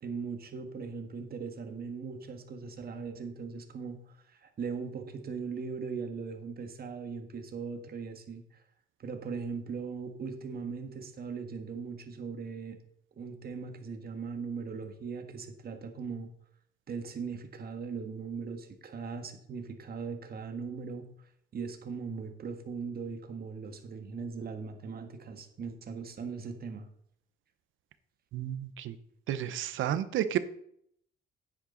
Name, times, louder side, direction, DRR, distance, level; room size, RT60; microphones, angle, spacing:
voice 1, 0.0-8.6 9.0-12.8 13.2-16.3 16.9-26.9, right 5 dB, 50° right, 6 dB, 1.7 m, -39 dB
voice 2, 28.3-29.0 29.3-30.4, right 11 dB, 80° right, 13 dB, 0.9 m, -31 dB
9.8 x 8.7 x 3.9 m, 0.68 s
cardioid pair, 90°, 20 cm